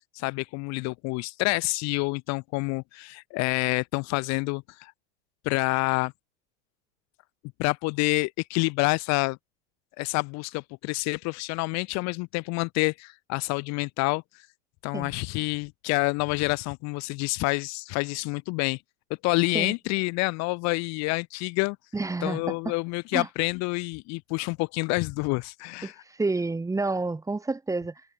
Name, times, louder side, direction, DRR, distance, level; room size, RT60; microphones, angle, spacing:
voice 1, 0.1-4.9 5.4-6.1 7.6-9.4 10.0-14.2 14.8-18.8 19.2-21.8 22.2-25.9, left 27 dB, 45° left, 0.7 m, -28 dB
voice 2, 21.9-22.7 23.1-23.3 25.8-28.0, right 3 dB, 10° right, 1.3 m, -29 dB
supercardioid pair, 120°, 37 cm